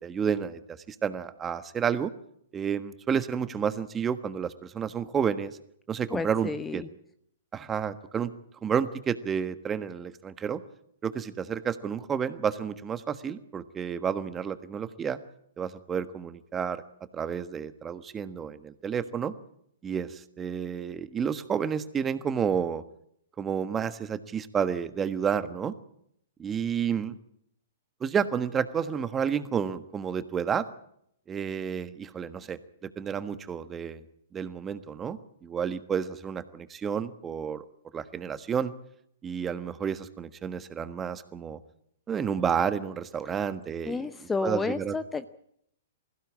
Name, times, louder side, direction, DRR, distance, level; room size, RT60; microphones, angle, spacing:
voice 1, 0.0-2.1 2.5-5.5 5.9-6.8 7.5-8.3 8.6-10.6 11.0-15.2 15.6-16.8 17.1-19.3 19.8-22.8 23.4-25.7 26.4-27.1 28.0-30.6 31.3-32.6 33.0-34.0 34.3-37.6 37.9-38.7 39.2-41.6 42.1-44.0 44.4-44.9, right 7 dB, 20° right, 12 dB, 1.4 m, -30 dB
voice 2, 6.1-6.9 43.9-45.3, left 4 dB, 10° left, 13 dB, 0.8 m, -31 dB
21.5 x 16.0 x 8.6 m, 0.72 s
figure-of-eight pair, 115°, 0 cm